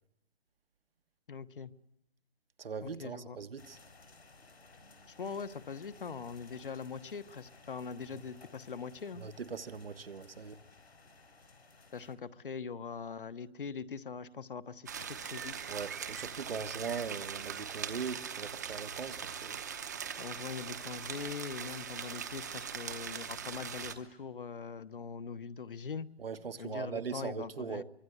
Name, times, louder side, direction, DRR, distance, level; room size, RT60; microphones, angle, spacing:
voice 1, 1.3-1.7 2.8-3.4 5.2-9.2 11.9-15.7 20.2-26.1 26.6-27.8, left 5 dB, 55° left, 1.2 m, -42 dB
voice 2, 2.6-3.8 8.1-8.2 9.2-10.6 15.7-19.6 26.2-27.8, right 5 dB, 65° right, 1.4 m, -40 dB
sound 1, 3.6-12.2, left 3 dB, 90° left, 6.5 m, -58 dB
sound 2, 14.9-23.9, right 7 dB, 15° right, 0.9 m, -41 dB
25.0 x 22.0 x 8.0 m
hypercardioid pair, 175°, 31 cm